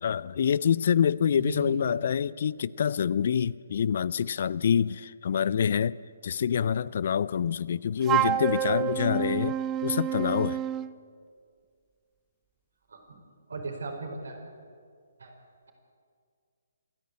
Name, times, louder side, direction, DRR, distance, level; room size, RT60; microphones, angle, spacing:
voice 1, 0.0-6.0 6.2-10.6, left 8 dB, 50° left, 22 dB, 0.4 m, -26 dB
voice 2, 1.4-1.8 12.9-13.2 13.5-14.4 15.2-15.3, right 3 dB, 65° right, 3 dB, 4.6 m, -37 dB
Wind instrument woodwind instrument, 8.0-10.9, right 11 dB, 20° right, 0.5 m, -28 dB
27.0 x 10.5 x 9.3 m, 2.2 s
figure-of-eight pair, 135°, 0 cm